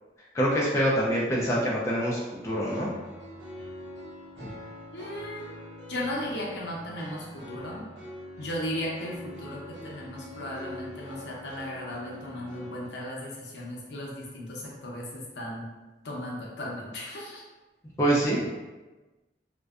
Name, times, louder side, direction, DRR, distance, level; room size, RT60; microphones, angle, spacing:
voice 1, 0.3-2.9 4.4-4.5 18.0-18.5, right 1 dB, 15° left, -6 dB, 0.3 m, -25 dB
sound 1, 2.4-12.9, left 1 dB, 85° right, 0.8 m, -43 dB
voice 2, 4.9-5.4 5.9-7.8 8.4-15.7 16.0-17.4, left 1 dB, 80° left, -3 dB, 0.6 m, -36 dB
2.5 x 2.1 x 2.3 m, 1.2 s
head